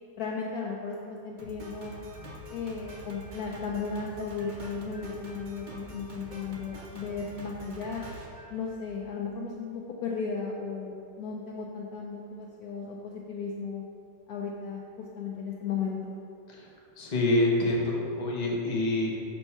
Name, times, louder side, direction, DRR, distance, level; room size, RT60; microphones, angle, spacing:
voice 1, 0.2-1.9 2.5-8.0 8.5-13.8 14.3-16.1, left 5 dB, 70° left, -2 dB, 1.0 m, -35 dB
Drum kit, 1.4-9.2, equal, 50° right, 0.5 m, -45 dB
voice 2, 17.0-19.1, left 1 dB, 30° left, -3 dB, 0.8 m, -26 dB
5.3 x 4.5 x 5.6 m, 2.6 s
omnidirectional pair, 2.0 m